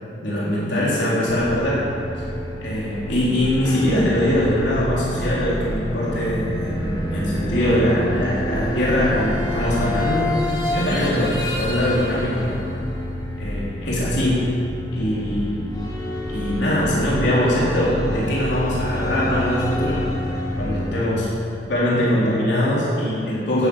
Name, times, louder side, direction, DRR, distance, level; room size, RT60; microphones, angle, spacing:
voice 1, 0.2-1.8 2.6-10.3 10.7-12.6 13.4-14.6 14.9-15.7 16.3-20.0 20.6-21.3 21.7-23.7, left 1 dB, 80° left, -7 dB, 3.7 m, -22 dB
sound 1, 1.3-20.9, equal, 20° left, 1.9 m, -28 dB
12.5 x 8.6 x 8.0 m, 2.5 s
head